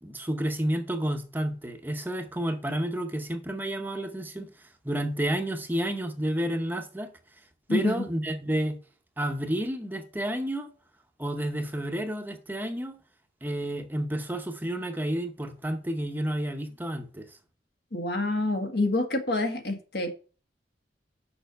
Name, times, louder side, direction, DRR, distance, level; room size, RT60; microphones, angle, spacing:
voice 1, 0.0-7.1 7.7-8.8 9.2-10.7 11.2-13.0 13.4-17.4, right 1 dB, 10° right, 0.8 m, -30 dB
voice 2, 7.7-8.0 17.9-20.1, left 2 dB, 60° left, 1.6 m, -27 dB
6.9 x 5.5 x 6.6 m
head